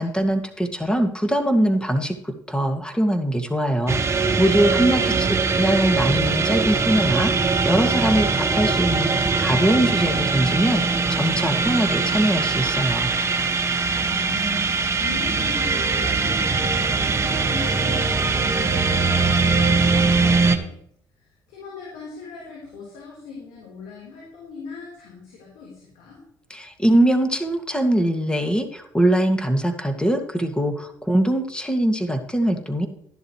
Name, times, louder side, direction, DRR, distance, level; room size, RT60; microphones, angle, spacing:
voice 1, 0.0-5.0 5.6-13.1 26.5-32.9, right 1 dB, 10° left, 5 dB, 2.1 m, -22 dB
sound 1, 3.9-20.6, right 4 dB, 30° right, 1.6 m, -21 dB
voice 2, 4.7-5.6 13.9-20.8 21.2-26.2, left 4 dB, 80° left, -4 dB, 4.0 m, -39 dB
13.0 x 11.0 x 3.2 m, 0.69 s
hypercardioid pair, 55°, 10 cm